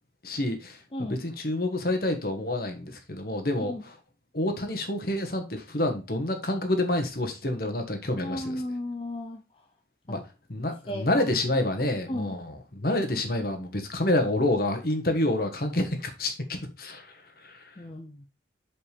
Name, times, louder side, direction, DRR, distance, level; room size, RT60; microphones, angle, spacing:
voice 1, 0.2-0.8 1.1-3.7 4.3-8.5 10.1-10.2 10.5-17.1 17.4-17.7, left 1 dB, 50° left, 1.5 m, -28 dB
voice 2, 8.2-9.4 10.1-10.2 10.9-11.3 12.1-12.4 17.8-18.3, left 1 dB, 30° left, 0.6 m, -35 dB
7.3 x 5.2 x 3.4 m
head